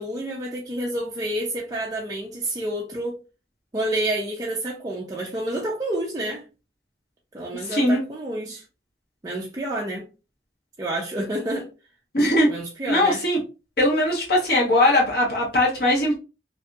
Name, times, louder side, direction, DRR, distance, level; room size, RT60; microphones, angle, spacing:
voice 1, 0.0-3.2 3.7-6.4 7.3-8.6 9.2-10.1 10.8-11.7 12.5-13.2, right 1 dB, 20° right, 0.4 m, -29 dB
voice 2, 7.7-8.0 12.1-12.5 12.9-13.4 13.8-16.2, left 1 dB, 60° left, 1.0 m, -20 dB
2.6 x 2.6 x 2.3 m
head